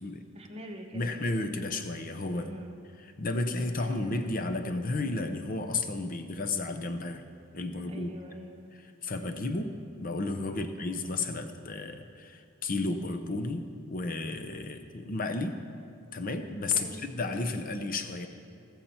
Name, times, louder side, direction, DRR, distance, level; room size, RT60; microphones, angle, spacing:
voice 1, 0.3-1.2 2.3-2.8 3.8-4.2 7.9-8.6 10.5-10.8 16.8-17.1, equal, 25° right, 2 dB, 1.1 m, -45 dB
voice 2, 0.9-2.5 3.2-7.2 7.5-8.1 9.0-15.6 16.1-18.3, left 2 dB, 40° left, 7 dB, 0.7 m, -32 dB
20.0 x 7.3 x 4.4 m, 2.5 s
head